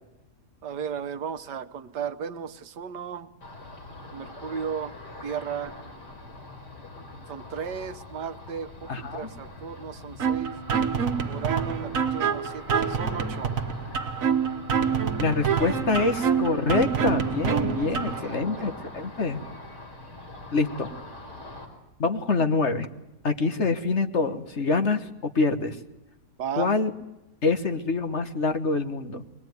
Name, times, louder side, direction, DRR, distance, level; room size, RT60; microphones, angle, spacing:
voice 1, 0.6-3.3 4.1-4.9 5.2-5.7 7.3-10.5 11.2-13.6 18.0-18.7 26.4-26.7, right 7 dB, 85° right, 10 dB, 1.7 m, -35 dB
Ocean, 3.4-21.7, left 2 dB, 85° left, 5.2 m, -43 dB
voice 2, 8.9-9.3 15.2-19.4 20.5-20.9 22.0-22.9 23.2-25.8 26.6-26.9 27.4-29.2, left 3 dB, 45° left, 8 dB, 1.6 m, -25 dB
sound 1, 10.2-18.2, right 7 dB, 55° right, 1.7 m, -26 dB
23.0 x 20.5 x 9.4 m, 0.94 s
omnidirectional pair, 1.8 m